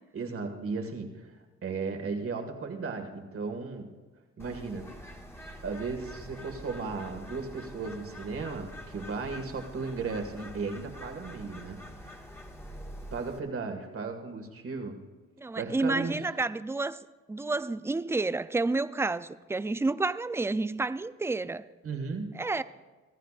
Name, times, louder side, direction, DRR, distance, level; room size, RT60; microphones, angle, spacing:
voice 1, 0.1-3.9 4.4-4.9 5.6-12.2 13.1-15.0 15.6-16.2 21.8-22.4, right 4 dB, 45° right, 1.9 m, -36 dB
Bird, 4.4-13.4, equal, 10° left, 1.7 m, -45 dB
voice 2, 15.4-17.0 17.3-21.6 22.4-22.6, right 3 dB, 10° right, 0.4 m, -30 dB
25.0 x 14.5 x 2.5 m
cardioid pair, 90°, 30 cm